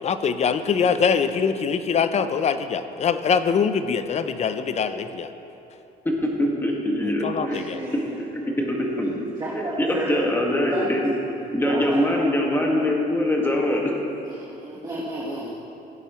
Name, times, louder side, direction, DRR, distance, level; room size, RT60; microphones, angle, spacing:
voice 1, 0.0-5.3 7.2-7.8, left 6 dB, 40° left, 11 dB, 0.6 m, -23 dB
voice 2, 6.0-7.6 7.9-8.0 8.6-9.1 9.8-11.1 11.5-13.9, left 1 dB, 15° left, -1 dB, 1.8 m, -23 dB
voice 3, 7.4-8.2 9.4-10.2 10.7-10.8 11.2-11.3 11.6-12.0 14.4-15.5, right 2 dB, 20° right, -6 dB, 1.6 m, -31 dB
16.5 x 8.9 x 3.1 m, 2.9 s
cardioid pair, 110°, 17 cm